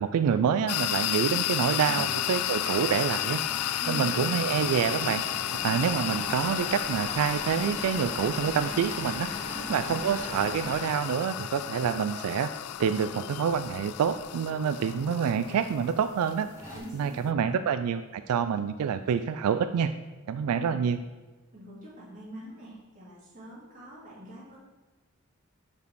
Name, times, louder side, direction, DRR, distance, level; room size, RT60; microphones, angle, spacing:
voice 1, 0.0-3.4 3.9-5.2 5.5-9.3 9.7-12.5 12.8-16.5 16.9-19.9 20.3-21.0, right 7 dB, 85° right, 11 dB, 0.3 m, -27 dB
sound 1, 0.7-17.3, left 13 dB, 85° left, 0.3 m, -33 dB
Engine / Mechanisms, 1.8-11.9 13.5-14.2 14.8-14.9 15.2-15.3 16.2-16.3 16.6-16.8, equal, 15° right, 1.8 m, -41 dB
voice 2, 3.8-4.3 9.4-10.0 16.7-17.6 20.5-20.8 21.5-24.6, equal, 35° right, -6 dB, 2.5 m, -44 dB
5.2 x 5.2 x 6.2 m, 1.3 s
head